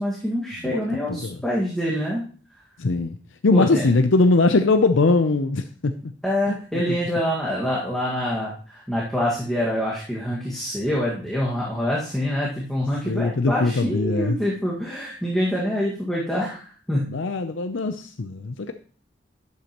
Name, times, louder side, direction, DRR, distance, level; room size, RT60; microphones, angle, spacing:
voice 1, 0.0-2.2 3.5-3.8 6.2-17.1, equal, ahead, -6 dB, 1.7 m, -26 dB
voice 2, 1.1-1.4 2.8-3.2 3.4-5.9 6.5-6.6 13.0-14.4 17.1-18.7, left 3 dB, 90° left, 8 dB, 0.6 m, -21 dB
11.5 x 8.3 x 3.0 m, 0.43 s
head